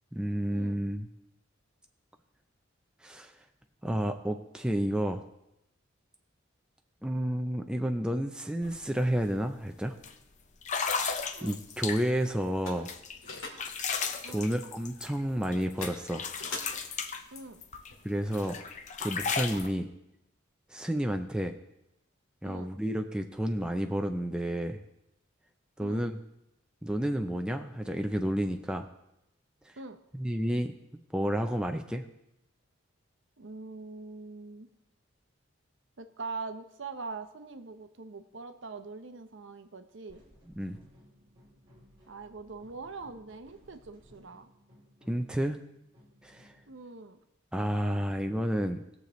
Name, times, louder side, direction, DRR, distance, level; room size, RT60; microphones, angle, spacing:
voice 1, 0.1-1.1 3.0-3.3 3.8-5.2 7.0-9.9 11.4-12.9 14.3-16.3 18.0-18.6 19.0-19.9 20.7-21.6 22.4-24.8 25.8-26.2 26.8-28.9 30.1-30.7 31.1-32.0 40.6-40.8 45.1-45.6 46.2-46.5 47.5-48.8, equal, 5° right, 4 dB, 0.5 m, -30 dB
sound 1, 8.6-8.8 9.1-9.4 10.0-10.1 10.6-12.3 12.9-15.6 15.8-17.9 18.3-19.7, left 5 dB, 35° left, 0.7 m, -35 dB
sound 2, 10.9-19.0, left 3 dB, 75° left, 2.2 m, -48 dB
voice 2, 17.3-17.6 22.4-22.7 25.8-26.1 29.8-30.0 33.4-34.7 36.0-40.2 42.1-44.5 46.7-47.2, right 4 dB, 60° right, 8 dB, 0.8 m, -43 dB
sound 3, 40.1-46.8, equal, 25° right, 3.2 m, -60 dB
19.0 x 6.7 x 3.1 m, 0.86 s
head